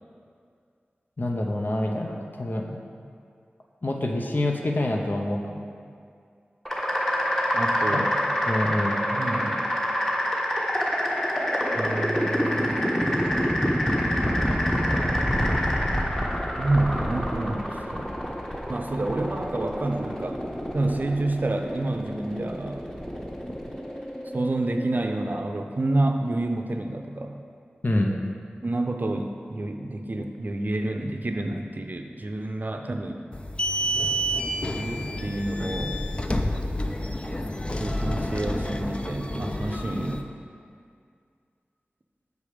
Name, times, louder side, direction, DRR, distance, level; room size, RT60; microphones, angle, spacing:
voice 1, 1.2-2.8 3.8-5.7 7.9-8.0 8.5-9.0 27.8-28.2, left 1 dB, 55° left, 1 dB, 0.8 m, -26 dB
sound 1, 6.7-25.4, equal, 10° left, 1.2 m, -26 dB
voice 2, 7.5-8.2 9.1-9.7 11.7-12.9 16.6-18.1 18.7-20.4 20.7-22.8 24.3-27.4 28.6-33.2 34.7-36.1 37.8-40.2, right 2 dB, 50° right, 4 dB, 0.6 m, -29 dB
sound 2, 33.3-40.2, equal, 30° left, 0.5 m, -29 dB
6.6 x 5.0 x 5.0 m, 2.3 s
cardioid pair, 40°, 4 cm